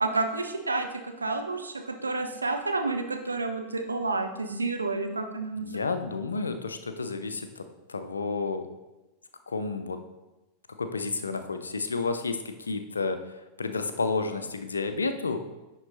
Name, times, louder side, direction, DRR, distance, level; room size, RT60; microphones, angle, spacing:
voice 1, 0.0-5.7, right 3 dB, 80° right, 5 dB, 0.8 m, -30 dB
voice 2, 5.6-7.6 7.9-8.7 9.5-10.0 10.8-13.2 13.6-15.5, left 4 dB, 75° left, 9 dB, 0.6 m, -31 dB
10.5 x 3.9 x 4.1 m, 1.1 s
figure-of-eight pair, 90°, 0 cm